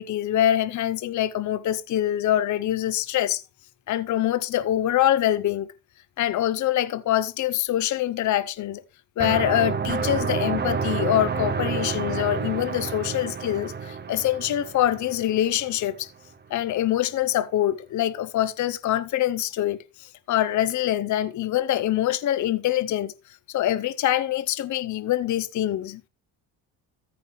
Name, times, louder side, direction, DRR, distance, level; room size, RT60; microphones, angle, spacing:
voice 1, 0.0-3.4 3.9-5.7 6.2-8.8 9.2-16.1 16.5-23.1 23.5-26.0, left 12 dB, 45° left, 0.7 m, -24 dB
sound 1, 9.2-15.9, right 5 dB, 25° right, 0.9 m, -29 dB
14.0 x 5.7 x 3.1 m
cardioid pair, 100°, 44 cm